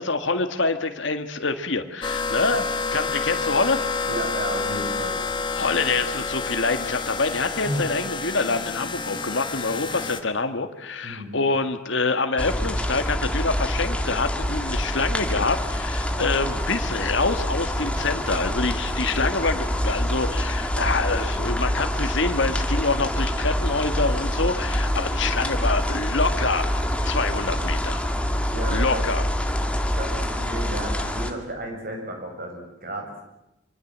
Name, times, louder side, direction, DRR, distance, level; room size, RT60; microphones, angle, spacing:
voice 1, 0.0-2.6 2.9-3.9 5.6-26.7 27.0-28.0 28.7-29.2, left 3 dB, 65° left, 7 dB, 1.8 m, -26 dB
sound 1, 2.0-10.2, left 4 dB, 25° left, 1.6 m, -29 dB
voice 2, 4.1-5.2 7.6-7.9 11.0-11.4 28.5-29.1 29.9-33.2, right 1 dB, 45° right, 3 dB, 7.1 m, -32 dB
sound 2, 12.4-31.3, equal, 5° left, 2.0 m, -26 dB
25.5 x 25.0 x 7.5 m, 0.89 s
head